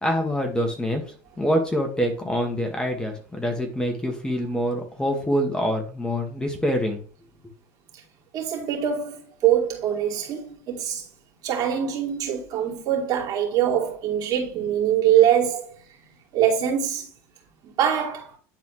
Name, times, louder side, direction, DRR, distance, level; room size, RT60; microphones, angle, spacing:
voice 1, 0.0-7.0, equal, 10° left, 1.8 m, -25 dB
voice 2, 8.3-11.0 11.4-15.7 16.3-17.1 17.6-18.4, right 9 dB, 50° right, 2.8 m, -23 dB
10.5 x 4.1 x 3.2 m
supercardioid pair, 100°, 8 cm